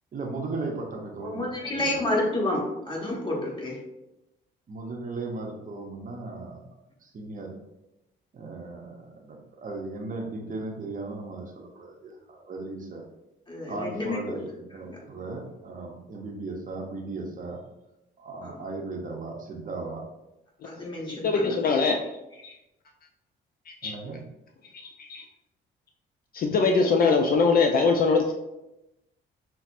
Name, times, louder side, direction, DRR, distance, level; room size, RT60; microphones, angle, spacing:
voice 1, 0.1-2.0 4.7-6.6 7.0-7.5 8.3-13.0 13.7-17.6 18.2-20.1 23.8-24.2, right 3 dB, 40° right, 1 dB, 0.7 m, -37 dB
voice 2, 1.2-3.8 13.5-14.4 14.8-15.0 18.4-18.6 20.6-21.6 22.4-22.5, left 1 dB, 25° left, -3 dB, 1.2 m, -30 dB
voice 3, 21.2-22.0 23.8-23.9 25.0-25.2 26.3-28.3, left 4 dB, 50° left, 3 dB, 0.4 m, -22 dB
5.6 x 2.0 x 2.5 m, 0.93 s
cardioid pair, 90°, 20 cm